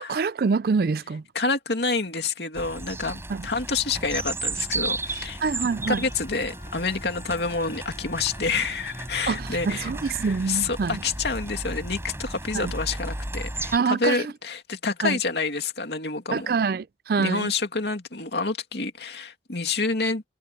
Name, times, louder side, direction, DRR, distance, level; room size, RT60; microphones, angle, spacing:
voice 1, 0.0-1.2 3.3-3.5 5.4-6.0 9.3-11.0 12.5-12.7 13.7-14.3 15.0-15.2 16.3-17.5, right 5 dB, 55° right, 0.4 m, -26 dB
voice 2, 1.3-5.4 5.9-16.5 17.2-20.2, left 4 dB, 70° left, 2.5 m, -28 dB
Wind instrument woodwind instrument, 2.6-11.7, left 4 dB, 50° left, 5.3 m, -53 dB
sound 1, 2.6-13.8, right 2 dB, 15° right, 4.4 m, -34 dB
head